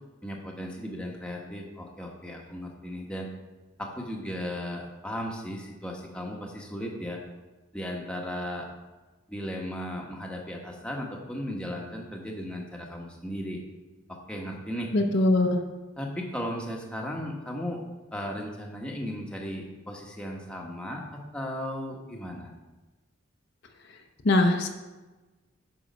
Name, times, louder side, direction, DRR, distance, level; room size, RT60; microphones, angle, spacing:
voice 1, 0.2-3.3 3.8-7.2 7.7-8.7 9.3-13.6 14.1-14.9 16.0-17.8 18.1-22.5, equal, 5° left, -1 dB, 1.1 m, -36 dB
voice 2, 14.9-15.6 24.2-24.7, left 2 dB, 55° left, 4 dB, 0.8 m, -21 dB
9.5 x 5.5 x 5.2 m, 1.2 s
head